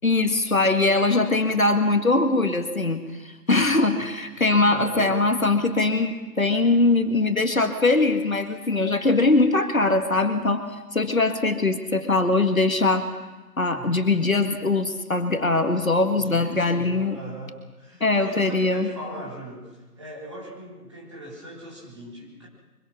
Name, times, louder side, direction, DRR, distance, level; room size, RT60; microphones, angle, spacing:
voice 1, 0.0-10.6 10.9-13.1 13.6-17.2 18.0-18.9, left 2 dB, 55° left, 6 dB, 2.1 m, -21 dB
voice 2, 3.5-4.1 4.6-5.2 13.7-14.1 16.1-22.5, right 1 dB, 20° right, -5 dB, 4.0 m, -40 dB
24.5 x 23.0 x 6.2 m, 1.2 s
figure-of-eight pair, 170°, 48 cm